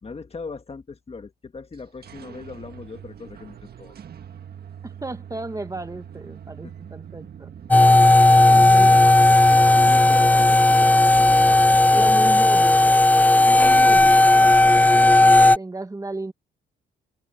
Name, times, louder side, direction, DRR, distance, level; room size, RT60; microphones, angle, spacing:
voice 1, 0.0-4.0 6.6-6.7 8.0-9.0 9.7-12.3, left 4 dB, 30° left, 2.0 m, -39 dB
sound 1, 1.7-13.4, right 8 dB, 50° right, 1.6 m, -42 dB
voice 2, 4.8-7.5 8.3-8.9 11.9-13.0 13.4-14.6 15.4-16.3, right 2 dB, 15° right, 1.6 m, -34 dB
sound 2, 7.7-15.6, left 2 dB, 10° left, 0.4 m, -14 dB
open air
cardioid pair, 90°, 20 cm